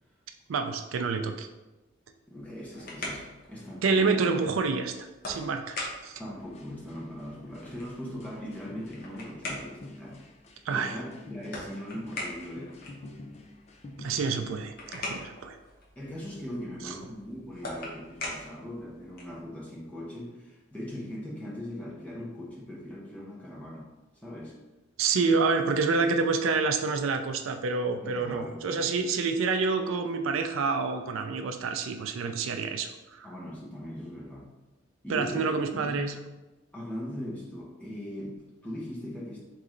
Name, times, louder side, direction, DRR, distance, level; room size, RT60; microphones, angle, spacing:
voice 1, 0.5-1.5 3.8-4.9 5.3-6.2 10.7-11.0 14.0-15.6 16.8-16.9 25.0-33.3 35.1-36.1, right 4 dB, 85° right, 7 dB, 0.4 m, -28 dB
voice 2, 2.3-4.3 6.2-10.2 10.7-12.9 16.0-23.9 24.2-24.6 28.0-28.6 33.2-34.5 35.0-35.5 35.9-36.2 36.7-39.4, left 1 dB, 5° left, -6 dB, 0.9 m, -40 dB
sound 1, 2.4-19.4, left 1 dB, 50° left, 0.9 m, -43 dB
sound 2, 6.4-14.7, left 1 dB, 30° left, 0.4 m, -48 dB
3.8 x 3.1 x 3.7 m, 1.1 s
head